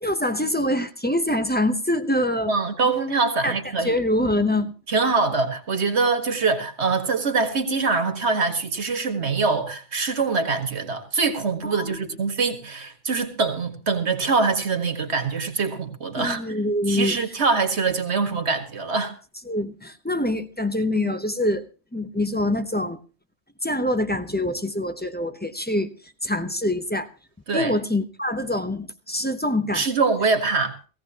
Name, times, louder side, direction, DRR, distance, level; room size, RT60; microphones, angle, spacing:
voice 1, 0.0-2.5 3.4-4.7 11.6-12.0 16.2-17.2 19.5-21.6 21.9-23.0 23.6-27.1 27.5-29.8, left 1 dB, 10° left, 0.7 m, -25 dB
voice 2, 2.5-3.9 4.9-16.4 16.9-19.1 27.5-27.7 29.7-30.8, right 4 dB, 85° right, 2.0 m, -24 dB
17.5 x 16.0 x 2.9 m
omnidirectional pair, 1.1 m